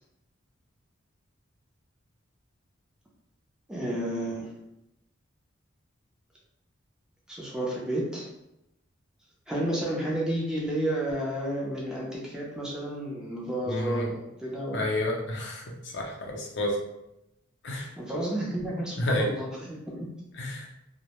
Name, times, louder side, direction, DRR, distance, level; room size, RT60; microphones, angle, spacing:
voice 1, 3.7-4.5 7.3-8.3 9.5-14.8 18.0-20.1, right 1 dB, 5° right, -5 dB, 0.5 m, -31 dB
voice 2, 13.7-14.1 14.7-16.8 17.6-17.9 19.0-19.3 20.4-20.7, left 1 dB, 60° left, 0 dB, 0.5 m, -30 dB
2.1 x 2.0 x 2.9 m, 0.86 s
head